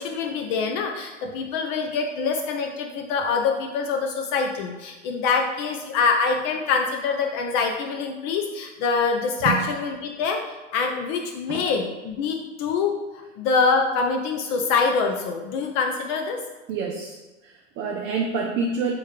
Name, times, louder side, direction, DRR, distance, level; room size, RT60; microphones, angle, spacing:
voice 1, 0.0-10.4 10.7-13.0 13.4-16.4, left 5 dB, 40° left, 3 dB, 0.5 m, -25 dB
voice 2, 16.7-18.9, right 5 dB, 30° right, 0 dB, 0.6 m, -28 dB
3.5 x 3.1 x 4.7 m, 1.2 s
hypercardioid pair, 95°, 38 cm